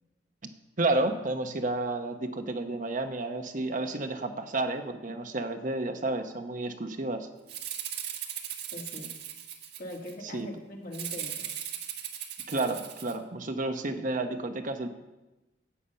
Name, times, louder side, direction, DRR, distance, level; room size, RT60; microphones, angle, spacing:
voice 1, 0.8-7.3 10.3-10.5 12.5-14.9, right 2 dB, 45° right, 6 dB, 0.9 m, -31 dB
Rattle (instrument), 7.5-10.1 10.9-13.1, right 9 dB, 60° right, 1.4 m, -38 dB
voice 2, 8.7-9.1 9.8-11.5, left 1 dB, 50° left, 0 dB, 2.2 m, -41 dB
13.0 x 8.4 x 5.6 m, 1.1 s
head